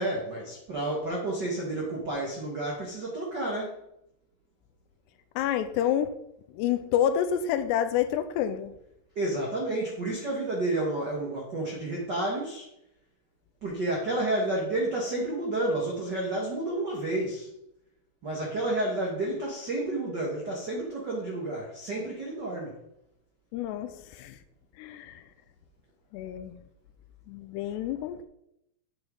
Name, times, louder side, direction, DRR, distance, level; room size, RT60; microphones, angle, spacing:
voice 1, 0.0-3.8 9.1-12.7 13.6-17.5 18.2-22.8, right 2 dB, 85° right, 0.9 m, -30 dB
voice 2, 5.4-6.2 6.5-8.8 23.5-24.4 24.8-25.2 26.1-26.6 27.3-28.2, left 10 dB, 85° left, 2.7 m, -28 dB
9.2 x 9.0 x 3.9 m
omnidirectional pair, 4.9 m